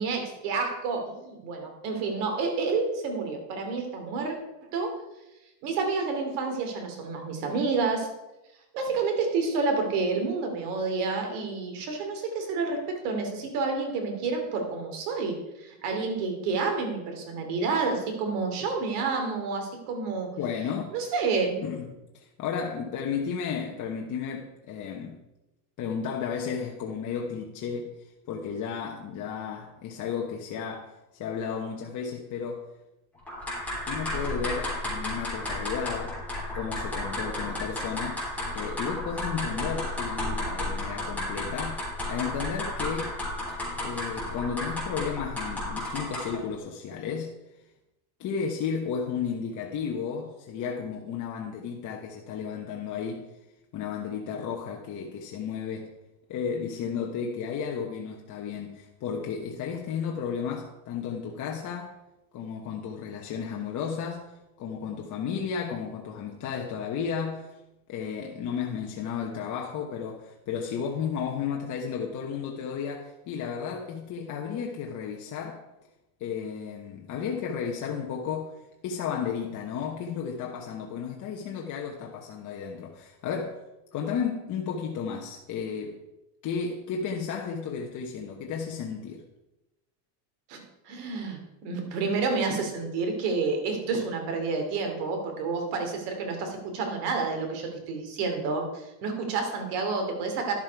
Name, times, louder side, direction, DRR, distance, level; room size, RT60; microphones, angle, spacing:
voice 1, 0.0-4.4 4.6-5.0 5.6-8.1 8.7-20.3 20.9-21.6 90.5-100.5, right 4 dB, 85° right, 2.8 m, -29 dB
voice 2, 20.4-21.0 21.6-25.2 25.8-32.7 33.9-36.2 36.5-38.2 38.5-43.1 43.8-47.3 48.2-53.3 53.7-55.9 56.3-61.9 62.3-64.3 64.6-67.5 67.9-75.6 76.2-83.6 83.9-86.0 86.4-89.2, left 6 dB, 40° left, 1.1 m, -33 dB
sound 1, 33.3-46.4, left 1 dB, 5° left, 3.7 m, -33 dB
11.5 x 7.4 x 4.7 m
cardioid pair, 140°, 45 cm